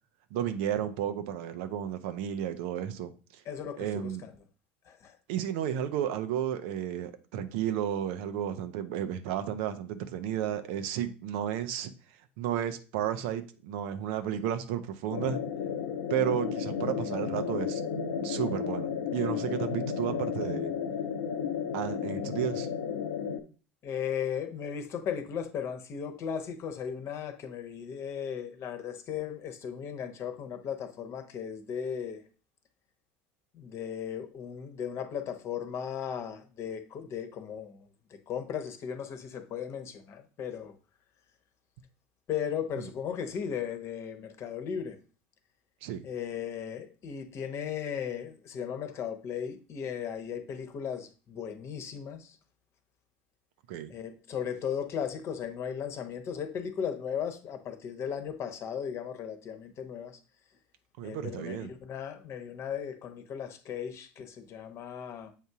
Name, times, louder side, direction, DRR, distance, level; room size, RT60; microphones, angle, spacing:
voice 1, 0.3-3.4 3.8-4.2 5.3-11.9 12.4-15.4 16.1-17.8 18.2-20.7 21.7-22.7 42.8-42.9 45.8-46.0 53.7-53.9 61.0-61.7, right 10 dB, 65° right, 0.6 m, -32 dB
voice 2, 3.4-4.3 4.8-5.2 23.8-32.2 33.5-40.8 42.3-45.0 46.0-52.4 53.9-60.2 61.0-65.3, left 8 dB, 45° left, 1.0 m, -36 dB
sound 1, 15.1-23.4, left 7 dB, 80° left, 0.7 m, -33 dB
7.4 x 2.7 x 4.6 m
hypercardioid pair, 75°, 6 cm